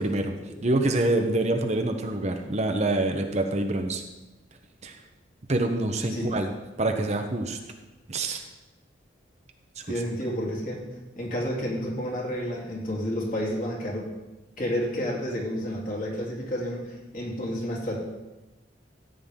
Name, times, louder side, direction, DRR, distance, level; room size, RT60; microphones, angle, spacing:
voice 1, 0.0-0.3 0.6-4.0 4.8-4.9 5.5-6.5 6.8-7.6 8.1-8.4 9.8-9.9, right 2 dB, 35° right, 5 dB, 0.9 m, -26 dB
voice 2, 6.1-6.5 6.8-7.0 9.9-10.8 11.2-14.1 14.6-18.0, equal, 45° left, -4 dB, 3.2 m, -30 dB
14.5 x 9.5 x 3.7 m, 1.1 s
head